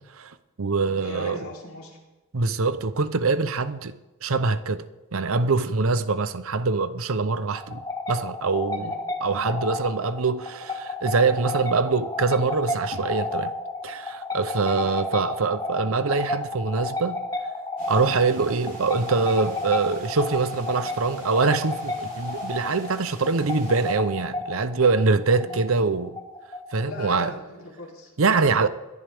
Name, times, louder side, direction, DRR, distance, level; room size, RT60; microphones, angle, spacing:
voice 1, 0.0-1.4 2.3-3.9 4.2-4.8 5.1-7.8 8.1-8.9 9.2-13.5 13.8-17.2 17.9-26.1 26.7-27.3 28.2-28.7, right 4 dB, 70° right, 0.7 m, -24 dB
voice 2, 0.9-2.0 8.8-9.0 14.7-15.0 25.4-25.7 26.8-28.1, left 1 dB, 80° left, 3.3 m, -39 dB
sound 1, 7.6-26.9, left 2 dB, 15° left, 1.2 m, -32 dB
sound 2, 17.8-23.9, right 2 dB, 40° right, 3.6 m, -46 dB
21.5 x 11.0 x 3.5 m
head